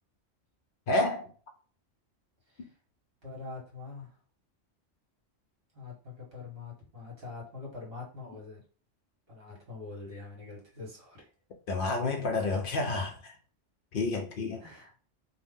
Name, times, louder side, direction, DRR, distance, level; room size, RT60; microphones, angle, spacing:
voice 1, 0.9-1.3 11.7-13.2 13.9-14.6, left 2 dB, 60° left, 0.6 m, -29 dB
voice 2, 3.2-4.2 5.7-8.6 9.3-11.3 14.6-15.0, left 4 dB, 50° right, 1.4 m, -44 dB
2.6 x 2.2 x 3.5 m
omnidirectional pair, 1.3 m